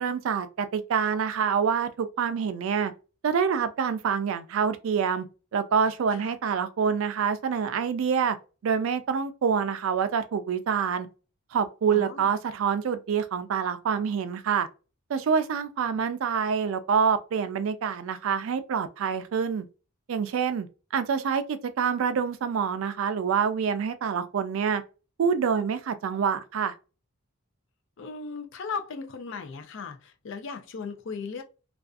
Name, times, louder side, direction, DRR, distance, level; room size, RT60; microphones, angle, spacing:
voice 1, 0.0-2.9 3.2-5.3 5.5-8.4 8.6-11.1 11.5-14.7 15.1-19.7 20.1-20.7 20.9-24.8 25.2-26.7, right 6 dB, 70° right, 0.3 m, -26 dB
voice 2, 11.9-12.3 28.0-31.4, left 5 dB, 60° left, 0.4 m, -37 dB
2.5 x 2.3 x 2.3 m
head